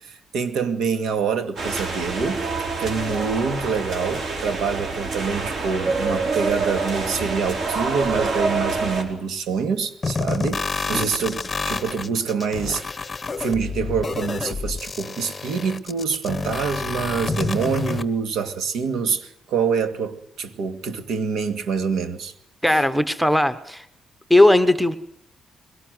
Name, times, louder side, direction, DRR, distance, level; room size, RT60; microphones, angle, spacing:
voice 1, 0.0-2.4 2.8-12.8 13.4-22.3 22.7-22.8, right 5 dB, 85° right, 2.2 m, -26 dB
sound 1, 1.6-9.0, right 3 dB, 50° right, 4.5 m, -26 dB
sound 2, 10.0-18.0, left 4 dB, 20° left, 0.9 m, -28 dB
voice 2, 22.6-23.8 24.3-24.9, left 1 dB, ahead, 1.1 m, -17 dB
22.0 x 18.0 x 7.9 m
cardioid pair, 170°, 0 cm